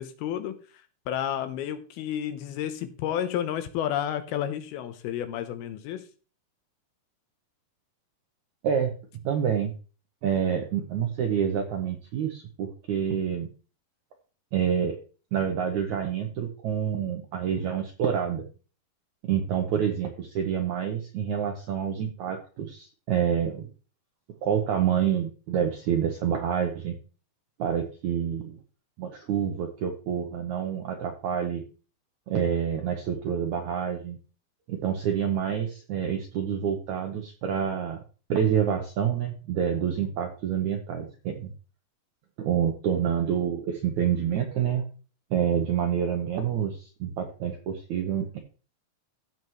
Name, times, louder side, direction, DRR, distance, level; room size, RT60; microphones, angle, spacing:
voice 1, 0.0-6.1, left 10 dB, 80° left, 10 dB, 2.6 m, -31 dB
voice 2, 9.2-9.7 10.2-13.5 14.5-15.0 15.3-18.4 19.3-23.6 24.4-26.9 27.6-28.6 29.0-31.6 32.3-34.2 34.7-38.0 38.3-41.5 42.4-44.9 45.3-48.4, right 8 dB, 75° right, 4 dB, 1.7 m, -27 dB
15.5 x 5.6 x 3.1 m, 0.36 s
omnidirectional pair, 4.7 m